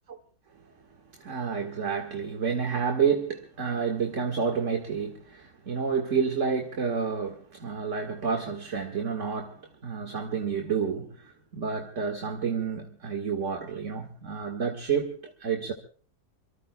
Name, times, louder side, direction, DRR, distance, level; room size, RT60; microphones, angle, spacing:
voice 1, 1.1-15.7, right 6 dB, 45° right, 1.9 m, -30 dB
26.5 x 23.5 x 2.2 m
omnidirectional pair, 1.8 m